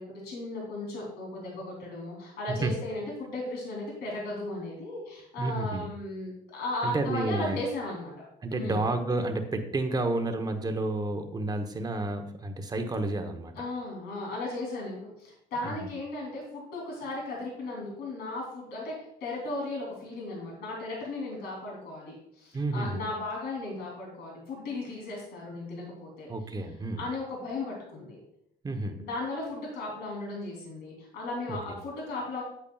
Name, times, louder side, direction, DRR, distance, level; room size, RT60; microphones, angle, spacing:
voice 1, 0.0-8.2 8.5-8.9 13.5-18.9 19.2-26.3 27.0-28.2 29.0-32.4, left 2 dB, 80° left, -2 dB, 3.1 m, -36 dB
voice 2, 5.4-5.8 6.8-7.6 8.4-13.5 15.6-15.7 22.5-23.0 26.3-27.0 28.6-29.0 31.5-31.6, right 2 dB, 25° right, 6 dB, 0.9 m, -30 dB
8.6 x 8.2 x 2.3 m, 0.76 s
cardioid pair, 110°, 17 cm